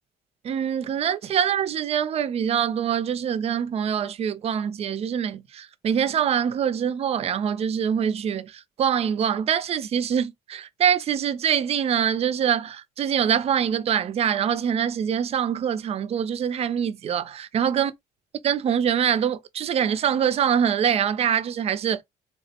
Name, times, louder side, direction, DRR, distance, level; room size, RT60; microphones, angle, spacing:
voice 1, 0.4-17.9 18.4-22.0, right 8 dB, 35° right, 0.4 m, -24 dB
3.6 x 2.0 x 2.8 m
cardioid pair, 110°, 17 cm